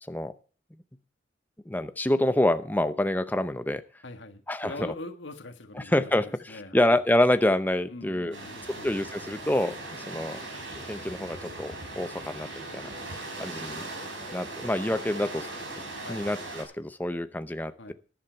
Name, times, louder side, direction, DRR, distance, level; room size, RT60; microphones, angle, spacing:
voice 1, 1.7-3.8 4.5-4.9 5.8-8.3 8.7-10.4 10.9-12.9 13.4-13.9 14.3-15.5 15.8-17.9, left 1 dB, 10° left, 10 dB, 0.6 m, -27 dB
voice 2, 4.0-6.1 6.5-7.0 7.9-9.1 16.0-16.3 17.8-17.9, left 2 dB, 70° left, 6 dB, 1.7 m, -42 dB
sound 1, 8.3-16.6, right 2 dB, 75° right, 5.4 m, -39 dB
13.0 x 11.0 x 4.6 m, 0.38 s
head